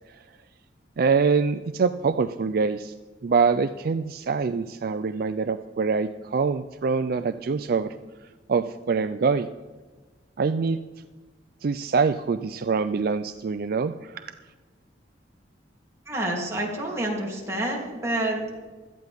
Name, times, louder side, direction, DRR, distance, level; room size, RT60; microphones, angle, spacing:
voice 1, 1.0-2.9 3.2-7.9 8.5-9.5 10.4-10.8 11.6-14.4, right 5 dB, 55° right, 10 dB, 0.4 m, -24 dB
voice 2, 16.1-18.5, right 1 dB, 15° right, -3 dB, 3.0 m, -28 dB
17.0 x 12.5 x 3.5 m, 1.3 s
head